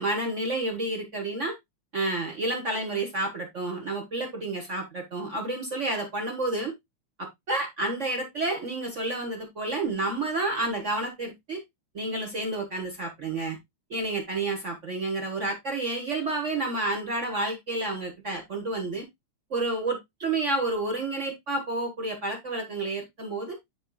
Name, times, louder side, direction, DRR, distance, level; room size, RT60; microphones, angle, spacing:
voice 1, 0.0-1.5 1.9-6.7 7.2-11.6 11.9-13.6 13.9-19.1 19.5-23.6, right 2 dB, 50° right, 0.8 m, -30 dB
11.5 x 4.3 x 2.2 m
omnidirectional pair, 3.3 m